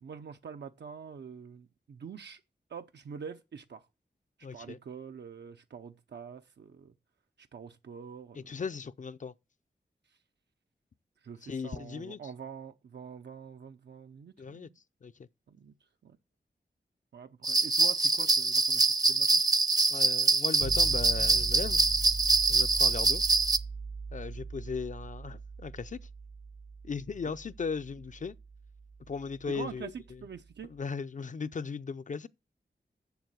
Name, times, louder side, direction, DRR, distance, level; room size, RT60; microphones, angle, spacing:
voice 1, 0.0-2.4 2.7-3.9 4.5-6.9 7.4-8.6 11.2-14.8 15.5-15.7 16.0-16.2 17.1-19.4 27.2-27.3 29.5-30.7, right 6 dB, 85° right, 0.7 m, -45 dB
voice 2, 4.4-4.8 8.3-9.3 11.4-12.2 14.4-14.7 15.0-15.1 19.9-21.8 22.5-23.2 24.1-26.0 26.8-28.3 29.1-29.9 30.7-32.3, left 5 dB, 45° left, 0.5 m, -37 dB
sound 1, 17.4-23.6, right 3 dB, 20° right, 0.5 m, -25 dB
sound 2, 20.6-30.5, right 5 dB, 65° right, 1.0 m, -40 dB
7.3 x 7.0 x 7.7 m
wide cardioid pair, 90°, 17 cm